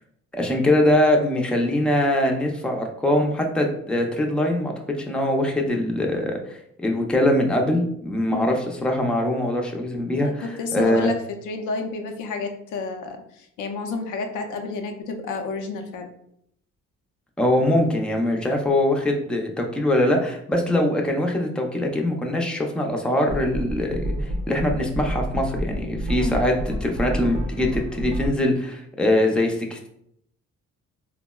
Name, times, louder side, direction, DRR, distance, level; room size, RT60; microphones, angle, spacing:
voice 1, 0.3-11.1 17.4-29.9, left 1 dB, 5° left, 1 dB, 0.4 m, -22 dB
voice 2, 8.3-8.6 10.2-11.2 11.4-16.1 26.2-26.4, left 3 dB, 85° left, 4 dB, 0.5 m, -30 dB
sound 1, 23.3-28.3, equal, 90° right, 0.6 m, -29 dB
3.4 x 2.0 x 2.2 m, 0.72 s
cardioid pair, 90°, 30 cm